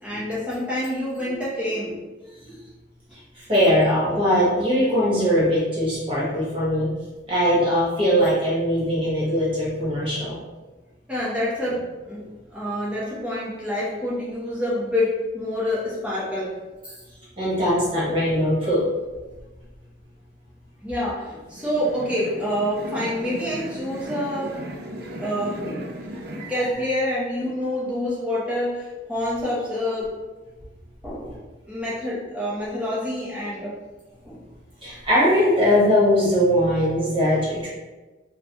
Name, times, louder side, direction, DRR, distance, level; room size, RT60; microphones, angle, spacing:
voice 1, 0.0-2.0 2.4-2.6 11.1-12.3 12.5-16.5 16.8-17.0 20.8-24.6 25.2-25.9 26.5-30.1 31.0-31.4 31.7-33.7 34.2-34.4, left 1 dB, 5° right, -8 dB, 0.8 m, -27 dB
voice 2, 3.3-6.9 7.3-10.4 17.4-18.8 26.4-26.5 34.8-37.7, equal, 30° right, -8 dB, 1.3 m, -20 dB
sound 1, 21.5-26.7, equal, 55° right, 0.4 m, -36 dB
3.9 x 2.2 x 2.9 m, 1.2 s
head